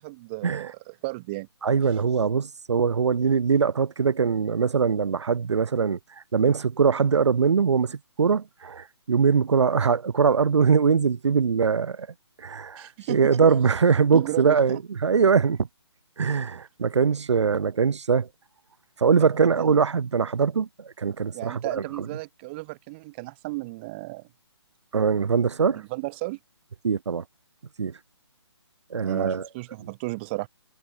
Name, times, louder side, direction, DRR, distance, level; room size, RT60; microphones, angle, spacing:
voice 1, 0.0-1.5 12.8-13.6 14.1-14.8 19.4-19.7 21.3-24.3 25.7-26.4 29.0-30.5, right 23 dB, 25° right, 1.1 m, -34 dB
voice 2, 1.6-6.0 6.3-12.1 12.4-15.7 16.2-18.3 19.0-21.8 24.9-25.8 26.8-27.2 27.8-27.9 28.9-29.5, right 6 dB, 80° right, 0.6 m, -22 dB
hypercardioid pair, 155°, 15 cm